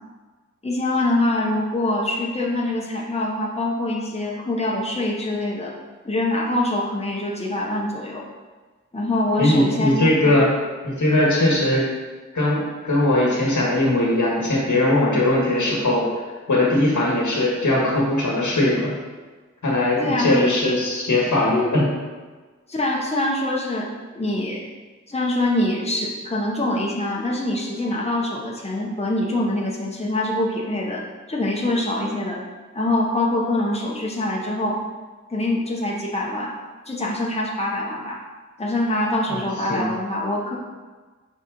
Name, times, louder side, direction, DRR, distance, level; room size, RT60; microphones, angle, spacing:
voice 1, 0.6-5.7 6.0-8.2 8.9-10.4 20.0-20.4 22.7-24.6 25.1-32.4 32.7-34.8 35.3-36.5 36.9-38.2 38.6-40.6, left 1 dB, 20° left, -2 dB, 0.9 m, -24 dB
voice 2, 9.4-10.4 10.8-11.8 12.3-16.1 16.5-18.9 19.6-21.9 39.3-39.9, left 1 dB, 80° left, -4 dB, 1.6 m, -20 dB
6.1 x 4.0 x 3.8 m, 1.4 s
wide cardioid pair, 80°, 30 cm